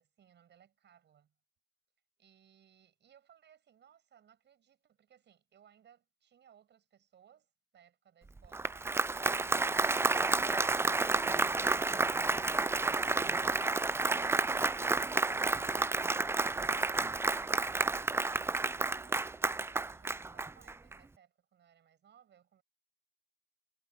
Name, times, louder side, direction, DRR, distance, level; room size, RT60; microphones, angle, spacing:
voice 1, 0.0-1.3 2.2-11.8 17.8-22.6, right 9 dB, 60° right, 7.5 m, -64 dB
Applause, 8.4-20.9, right 3 dB, 10° right, 0.4 m, -31 dB
cardioid pair, 90°, 20 cm